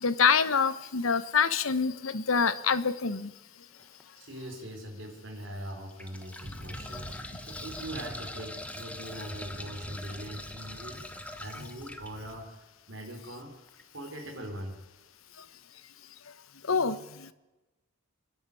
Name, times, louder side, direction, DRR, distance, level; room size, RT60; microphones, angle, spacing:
voice 1, 0.0-3.3 16.7-17.0, left 5 dB, 75° left, 14 dB, 1.1 m, -25 dB
sound 1, 3.8-4.0 4.7-4.8 5.7-12.1 13.7-13.8 14.1-14.2, left 1 dB, 5° left, 1.3 m, -43 dB
voice 2, 4.2-7.1 7.4-11.1 11.4-14.8, right 1 dB, 60° right, 2 dB, 4.2 m, -42 dB
sound 2, 6.4-12.5, equal, 15° right, 3.8 m, -46 dB
25.5 x 11.0 x 9.8 m, 1.1 s
head